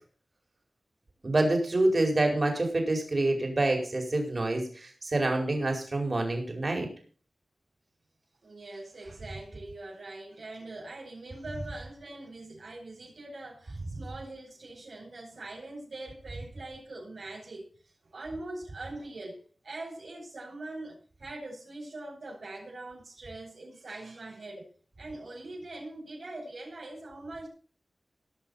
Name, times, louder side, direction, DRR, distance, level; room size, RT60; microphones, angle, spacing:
voice 1, 1.2-6.9, right 2 dB, 50° right, 2 dB, 4.9 m, -27 dB
voice 2, 8.4-17.7 18.1-24.7 25.0-27.5, right 2 dB, 85° right, -8 dB, 6.2 m, -42 dB
18.5 x 6.4 x 5.7 m, 0.43 s
cardioid pair, 45°, 0 cm